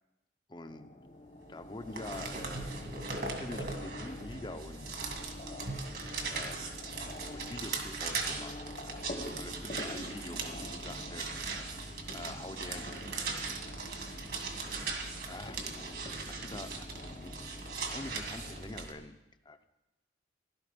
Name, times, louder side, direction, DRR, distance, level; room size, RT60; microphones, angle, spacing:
voice 1, 0.5-0.9 1.5-2.7 3.4-4.9 6.3-6.6 7.3-8.6 9.4-11.3 12.1-13.0 14.1-14.3 15.2-15.6 16.4-19.1 19.4-19.7, left 2 dB, 25° left, 9 dB, 0.7 m, -45 dB
sound 1, 0.6-18.6, left 1 dB, 45° left, 1.2 m, -47 dB
sound 2, 1.6-18.9, right 4 dB, 60° right, 2.0 m, -39 dB
16.5 x 12.0 x 5.2 m, 1.0 s
head